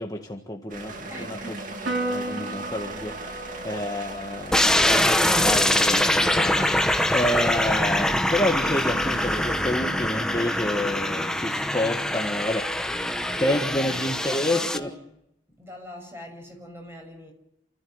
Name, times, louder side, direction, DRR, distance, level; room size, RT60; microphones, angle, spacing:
voice 1, 0.0-1.6 2.1-13.1 13.4-14.9, left 1 dB, 20° left, 1.7 m, -29 dB
sound 1, 0.7-11.6, right 2 dB, 45° right, 2.3 m, -39 dB
voice 2, 1.1-1.8 13.0-15.2 15.6-17.3, equal, 15° right, 6.9 m, -43 dB
Piano, 1.9-8.5, right 1 dB, 70° right, 4.1 m, -37 dB
sound 2, 4.5-14.8, left 1 dB, 5° left, 1.0 m, -23 dB
29.0 x 15.0 x 8.1 m
head